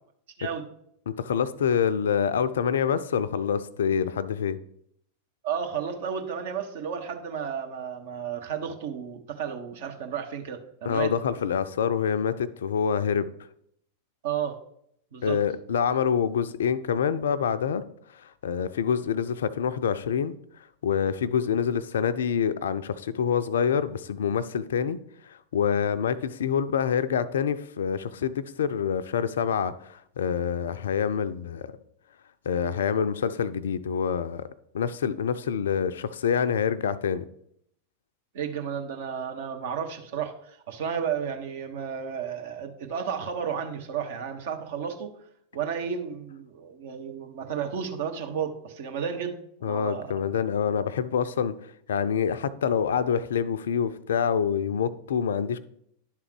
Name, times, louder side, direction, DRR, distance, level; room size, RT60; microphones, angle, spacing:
voice 1, 1.1-4.6 10.9-13.3 15.2-17.8 18.1-20.3 20.8-25.0 25.3-31.7 32.5-34.5 34.7-37.2 49.6-55.6, left 7 dB, 65° left, 14 dB, 0.4 m, -26 dB
voice 2, 5.4-11.1 14.2-14.6 15.1-15.4 38.3-45.1 45.5-50.1, right 7 dB, 55° right, 5 dB, 1.0 m, -32 dB
11.0 x 3.7 x 4.7 m, 0.71 s
figure-of-eight pair, 90°, 0 cm